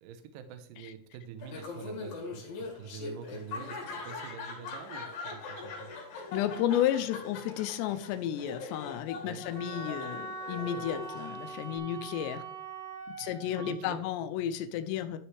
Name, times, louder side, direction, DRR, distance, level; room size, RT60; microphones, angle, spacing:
voice 1, 0.0-5.9 9.2-9.4 13.2-14.1, right 7 dB, 80° right, 9 dB, 2.1 m, -46 dB
Laughter, 1.4-11.8, left 3 dB, 60° left, 3.3 m, -42 dB
voice 2, 6.3-12.4 13.1-15.2, left 11 dB, 85° left, 9 dB, 2.8 m, -32 dB
Wind instrument woodwind instrument, 9.5-13.8, right 4 dB, 40° right, 3.6 m, -42 dB
11.5 x 6.3 x 3.2 m, 0.64 s
omnidirectional pair, 4.9 m